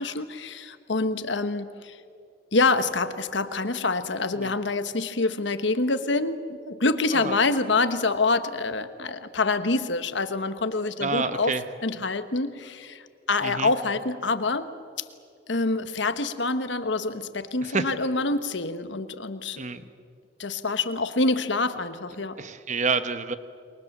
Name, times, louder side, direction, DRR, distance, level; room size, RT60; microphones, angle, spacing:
voice 1, 0.0-2.0 2.5-11.6 11.8-14.7 15.5-19.6 20.4-22.4, left 3 dB, 70° left, 10 dB, 1.3 m, -26 dB
voice 2, 11.0-11.6 13.4-13.7 17.6-17.9 19.6-19.9 22.4-23.4, right 4 dB, 40° right, 11 dB, 1.1 m, -28 dB
28.5 x 23.5 x 7.3 m, 2.3 s
head